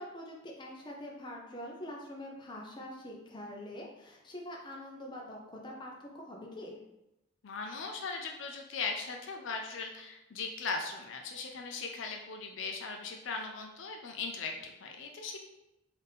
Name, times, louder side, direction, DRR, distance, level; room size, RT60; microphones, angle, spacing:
voice 1, 0.0-6.8, left 1 dB, 20° left, -1 dB, 0.6 m, -44 dB
voice 2, 7.4-15.4, left 4 dB, 65° left, 3 dB, 0.4 m, -39 dB
4.0 x 2.6 x 3.5 m, 0.91 s
head